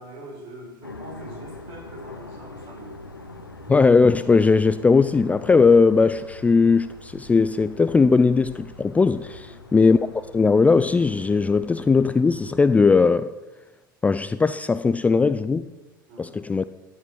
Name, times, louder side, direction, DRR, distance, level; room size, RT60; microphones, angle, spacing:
voice 1, 0.0-3.0 9.4-9.7 16.1-16.4, right 1 dB, 50° right, 6.6 m, -43 dB
sound 1, 0.8-12.8, left 2 dB, 90° left, 1.3 m, -43 dB
voice 2, 3.7-10.0 10.3-13.3 14.0-15.7 16.2-16.6, left 4 dB, 10° left, 0.4 m, -18 dB
14.5 x 11.0 x 6.3 m
figure-of-eight pair, 80°, 12 cm